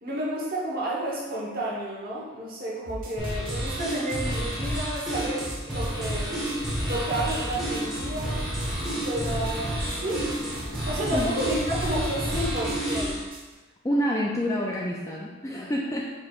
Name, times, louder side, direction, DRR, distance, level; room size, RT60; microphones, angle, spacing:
voice 1, 0.0-6.4 6.8-8.5 9.0-10.3 10.9-13.2, right 1 dB, 45° right, -5 dB, 1.2 m, -31 dB
sound 1, 2.9-13.5, equal, 70° right, 1.0 m, -37 dB
sound 2, 3.2-13.3, right 1 dB, ahead, 1.1 m, -30 dB
sound 3, 5.8-12.9, equal, 60° left, 1.2 m, -39 dB
voice 2, 13.8-16.1, equal, 15° left, -2 dB, 0.3 m, -27 dB
4.8 x 4.5 x 2.4 m, 1.2 s
head